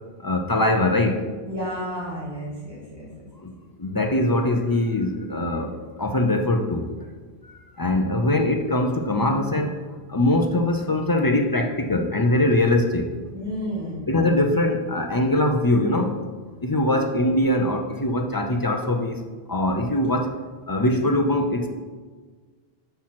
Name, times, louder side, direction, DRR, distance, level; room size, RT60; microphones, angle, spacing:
voice 1, 0.2-1.2 3.4-3.5 3.8-6.9 7.4-9.8 10.1-13.1 14.1-16.1 16.6-19.2 19.5-20.4 20.7-21.7, left 1 dB, 30° left, 3 dB, 0.4 m, -22 dB
voice 2, 1.5-3.3 13.3-14.1, equal, 25° right, -6 dB, 2.1 m, -32 dB
6.0 x 4.4 x 5.8 m, 1.4 s
omnidirectional pair, 1.1 m